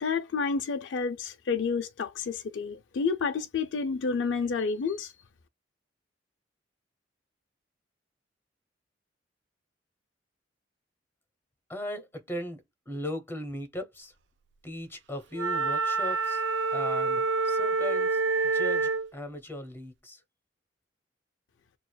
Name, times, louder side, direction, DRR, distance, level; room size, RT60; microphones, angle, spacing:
voice 1, 0.0-5.1, left 5 dB, 90° left, 0.4 m, -30 dB
voice 2, 11.7-14.1 14.6-16.4 16.7-20.2, left 1 dB, 15° left, 0.8 m, -38 dB
Wind instrument woodwind instrument, 15.3-19.1, right 4 dB, 75° right, 0.4 m, -27 dB
6.2 x 2.4 x 2.2 m
head